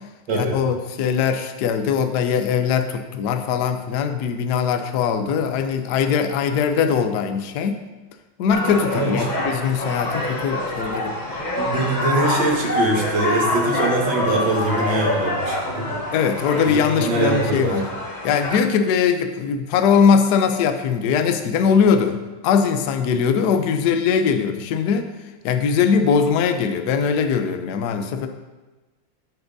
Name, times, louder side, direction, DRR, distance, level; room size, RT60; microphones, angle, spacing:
voice 1, 0.3-7.8 8.4-11.1 16.1-17.9 18.2-22.2 22.4-25.1 25.4-28.3, left 6 dB, 65° left, 7 dB, 1.1 m, -21 dB
sound 1, 8.5-18.6, left 1 dB, 30° left, 1.0 m, -26 dB
voice 2, 8.9-9.3 11.6-15.9 16.7-17.8, right 2 dB, 65° right, -1 dB, 2.2 m, -23 dB
13.5 x 7.0 x 2.7 m, 1.2 s
omnidirectional pair, 2.3 m